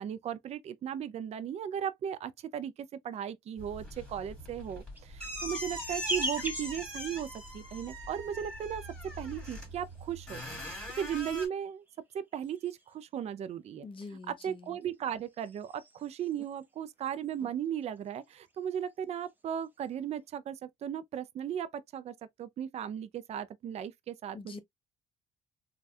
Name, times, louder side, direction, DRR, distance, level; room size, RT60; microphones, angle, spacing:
voice 1, 0.0-8.8 9.2-10.4 10.7-11.8 12.1-13.9 14.3-24.6, right 9 dB, 40° right, 0.4 m, -37 dB
sound 1, 3.6-11.5, equal, 5° left, 1.8 m, -41 dB
sound 2, 4.6-8.1 9.0-10.4 11.2-13.1 14.5-16.6 17.0-17.5 17.8-18.9 19.3-19.9, equal, 10° right, 0.7 m, -42 dB
voice 2, 13.8-14.8 24.3-24.6, left 4 dB, 30° left, 0.8 m, -45 dB
3.3 x 2.2 x 2.6 m
cardioid pair, 110°, 17 cm